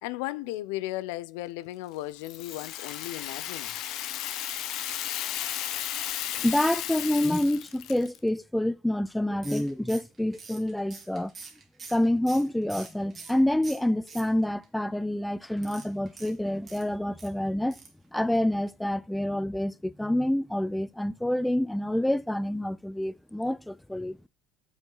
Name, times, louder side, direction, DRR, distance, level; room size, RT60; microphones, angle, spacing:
voice 1, 0.0-3.8, left 16 dB, 90° left, 0.4 m, -35 dB
Rattle (instrument), 2.2-8.2, left 12 dB, 60° left, 0.8 m, -34 dB
voice 2, 6.4-11.3 11.9-17.8 18.1-24.2, left 1 dB, 5° left, 0.3 m, -27 dB
sound 1, 9.4-13.4 13.6-14.6 15.6-17.3 17.7-18.0 18.3-18.4 18.7-18.8, right 4 dB, 30° right, 1.9 m, -46 dB
7.6 x 5.2 x 3.8 m
cardioid pair, 125°, 0 cm